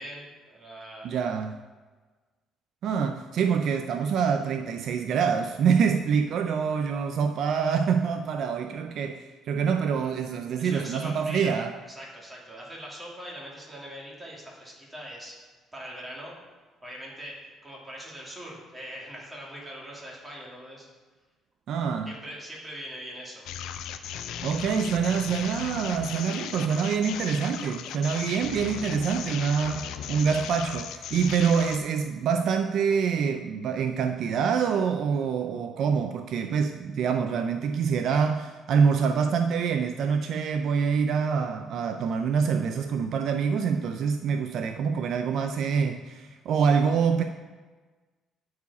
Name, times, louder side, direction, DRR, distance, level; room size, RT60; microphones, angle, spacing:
voice 1, 0.0-1.1 10.6-11.6 11.9-15.3 15.7-16.3 16.8-20.9 22.1-23.5, equal, 15° right, 2.5 m, -42 dB
voice 2, 1.0-1.6 2.8-11.8 21.7-22.1 24.4-47.2, right 6 dB, 65° right, 0.4 m, -26 dB
sound 1, 23.5-31.8, left 9 dB, 75° left, 0.5 m, -37 dB
9.3 x 4.8 x 4.2 m
cardioid pair, 85°, 0 cm